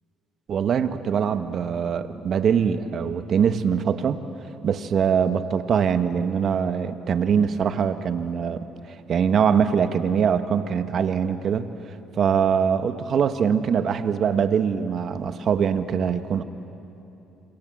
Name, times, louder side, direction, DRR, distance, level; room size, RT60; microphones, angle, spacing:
voice 1, 0.5-4.2 4.6-8.7 9.1-11.7 12.2-16.4, right 7 dB, 55° right, 10 dB, 1.4 m, -23 dB
27.0 x 26.5 x 7.7 m, 2.9 s
supercardioid pair, 80°, 0 cm